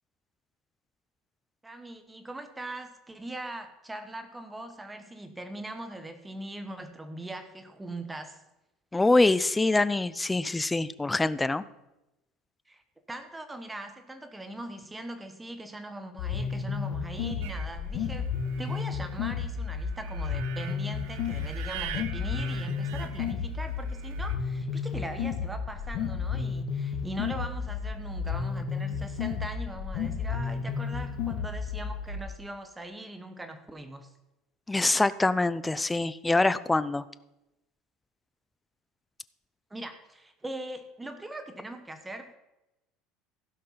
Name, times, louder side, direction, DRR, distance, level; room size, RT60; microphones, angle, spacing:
voice 1, 1.6-8.4 12.7-12.8 13.1-18.3 18.6-34.1 39.7-42.4, right 1 dB, 10° right, 8 dB, 1.1 m, -41 dB
voice 2, 8.9-11.6 34.7-37.0, left 2 dB, 10° left, 16 dB, 0.4 m, -24 dB
sound 1, 16.2-32.2, left 6 dB, 55° left, 2.1 m, -32 dB
sound 2, 17.4-24.4, right 11 dB, 90° right, 0.9 m, -44 dB
16.0 x 5.6 x 5.6 m, 0.95 s
cardioid pair, 155°, 0 cm